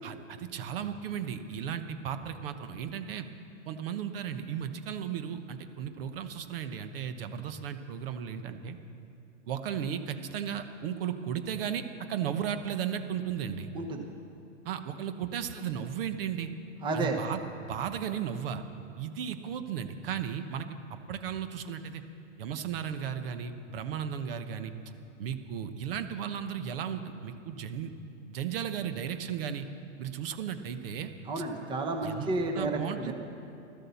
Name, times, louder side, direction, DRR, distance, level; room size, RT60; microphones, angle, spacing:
voice 1, 0.0-3.3 3.7-8.8 9.5-13.7 14.6-16.5 16.9-18.6 19.0-22.0 22.4-24.7 25.2-27.9 28.3-29.7 30.0-31.1 32.0-33.1, right 8 dB, 45° right, 9 dB, 1.1 m, -35 dB
voice 2, 13.7-14.1 16.8-17.2 31.3-33.1, right 2 dB, 10° right, 4 dB, 1.0 m, -31 dB
15.5 x 13.0 x 7.0 m, 2.7 s
hypercardioid pair, 145°, 38 cm